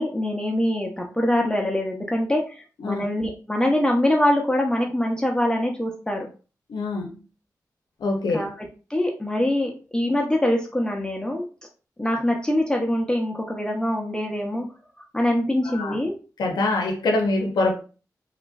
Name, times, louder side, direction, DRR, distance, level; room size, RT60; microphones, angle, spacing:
voice 1, 0.0-6.3 8.3-8.5 8.9-11.4 12.0-14.6 15.1-16.2, left 1 dB, 10° left, 0.7 m, -24 dB
voice 2, 6.7-7.1 8.0-8.5 15.6-16.0 16.4-17.7, left 2 dB, 85° left, 0.5 m, -24 dB
2.9 x 2.4 x 2.3 m
cardioid pair, 40°, 7 cm